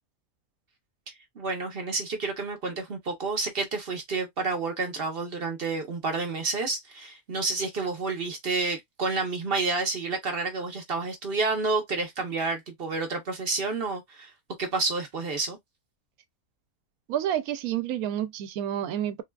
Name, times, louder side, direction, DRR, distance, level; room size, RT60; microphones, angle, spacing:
voice 1, 1.4-14.3 14.6-15.6, right 3 dB, 50° right, 0.8 m, -29 dB
voice 2, 17.1-19.2, right 11 dB, 85° right, 1.0 m, -29 dB
3.7 x 2.3 x 2.2 m
omnidirectional pair, 1.5 m